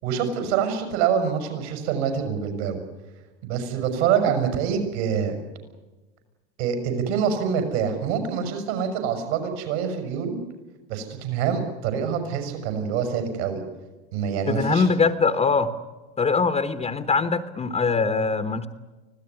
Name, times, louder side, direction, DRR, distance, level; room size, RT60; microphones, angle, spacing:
voice 1, 0.0-2.8 3.4-5.3 6.6-10.4 10.9-13.6 14.1-14.9, right 7 dB, 65° right, 6 dB, 6.3 m, -25 dB
voice 2, 14.5-15.8 16.2-18.7, left 4 dB, 15° left, 11 dB, 1.1 m, -22 dB
25.0 x 16.5 x 9.7 m, 1.2 s
supercardioid pair, 115°, 35 cm